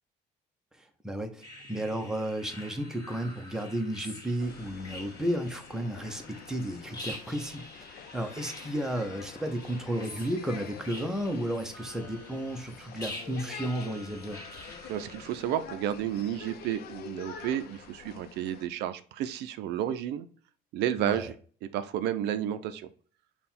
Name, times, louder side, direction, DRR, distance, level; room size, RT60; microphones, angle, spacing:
voice 1, 0.8-14.4 21.0-21.3, right 1 dB, 5° right, 4 dB, 0.7 m, -33 dB
sound 1, 1.4-15.4, left 1 dB, 20° left, 1.7 m, -47 dB
sound 2, 4.4-18.7, left 7 dB, 70° left, 0.6 m, -47 dB
voice 2, 14.9-20.3 20.7-21.3 21.7-22.9, right 11 dB, 85° right, 11 dB, 0.5 m, -31 dB
5.5 x 2.3 x 4.2 m, 0.43 s
cardioid pair, 110°, 17 cm